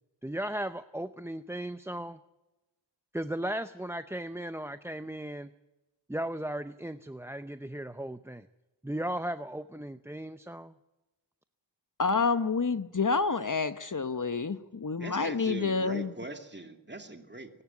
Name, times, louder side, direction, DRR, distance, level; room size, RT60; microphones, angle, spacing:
voice 1, 0.2-2.2 3.1-5.5 6.1-8.5 8.8-10.7, right 1 dB, 5° right, 12 dB, 0.6 m, -36 dB
voice 2, 12.0-16.1, left 4 dB, 40° left, 12 dB, 1.0 m, -28 dB
voice 3, 15.0-17.6, right 2 dB, 25° right, 6 dB, 2.6 m, -41 dB
24.0 x 12.0 x 9.5 m, 1.0 s
wide cardioid pair, 65°, 46 cm